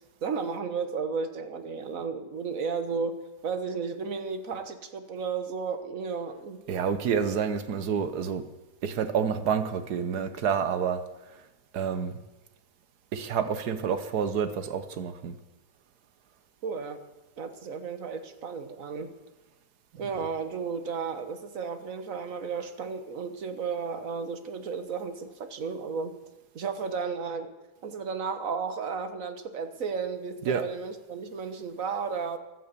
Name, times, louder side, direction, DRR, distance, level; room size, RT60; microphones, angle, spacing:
voice 1, 0.2-6.6 16.6-17.0 17.4-19.1 20.0-26.2 26.5-27.5 27.8-32.4, right 5 dB, 60° right, 1.6 m, -33 dB
voice 2, 6.7-8.4 8.8-11.0 11.3-11.4 11.7-12.2 13.1-15.4 30.4-30.6, right 7 dB, 85° right, 1.6 m, -28 dB
15.5 x 11.5 x 6.8 m
omnidirectional pair, 1.7 m